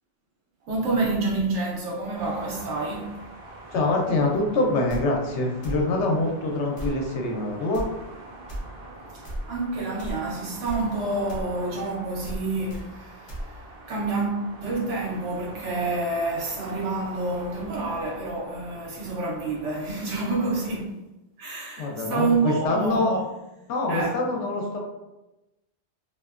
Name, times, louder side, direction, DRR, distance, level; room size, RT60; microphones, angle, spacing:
voice 1, 0.7-3.1 9.5-13.6 13.9-21.0 21.4-23.2 23.9-24.2, right 3 dB, 85° right, 1.0 m, -28 dB
sound 1, 2.1-20.8, right 2 dB, 60° right, 0.7 m, -44 dB
voice 2, 3.7-7.9 21.8-23.2 23.7-24.8, left 2 dB, 80° left, 0.9 m, -25 dB
sound 2, 4.9-5.0 5.6-5.8 6.8-7.0 7.7-7.9 8.5-8.6 9.2-9.4 10.0-10.2 10.7-10.8 11.3-11.5 12.2-12.4 12.7-12.8 13.3-13.4, right 1 dB, 45° left, 0.4 m, -33 dB
2.6 x 2.1 x 2.3 m
omnidirectional pair, 1.2 m